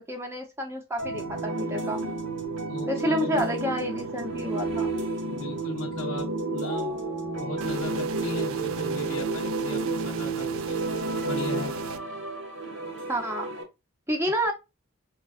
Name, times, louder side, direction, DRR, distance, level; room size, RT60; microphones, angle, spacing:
voice 1, 0.0-2.0 2.9-4.9 13.1-13.5 14.1-14.5, equal, 15° right, 0.7 m, -29 dB
sound 1, 1.0-13.6, right 3 dB, 60° right, 0.9 m, -31 dB
voice 2, 2.7-3.4 5.3-7.1 7.4-10.8 11.2-11.8, left 2 dB, 75° left, 0.5 m, -38 dB
sound 2, 7.6-12.0, right 8 dB, 80° right, 0.3 m, -40 dB
4.8 x 2.3 x 2.4 m
head